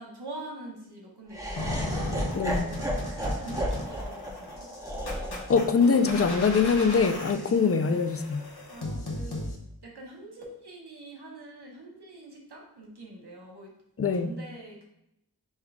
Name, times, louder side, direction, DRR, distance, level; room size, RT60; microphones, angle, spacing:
voice 1, 0.0-2.3 2.6-4.7 7.3-7.6 8.7-9.4 9.8-13.7 14.2-14.9, right 2 dB, 85° right, -2 dB, 1.0 m, -44 dB
Laughter, 1.3-7.5, equal, 10° right, 0.9 m, -34 dB
sound 1, 1.6-9.5, left 1 dB, 75° left, 0.9 m, -37 dB
voice 2, 2.3-2.7 5.5-8.4 14.0-14.4, left 5 dB, 40° left, 8 dB, 0.4 m, -23 dB
5.6 x 2.3 x 3.4 m, 0.83 s
wide cardioid pair, 45°, 39 cm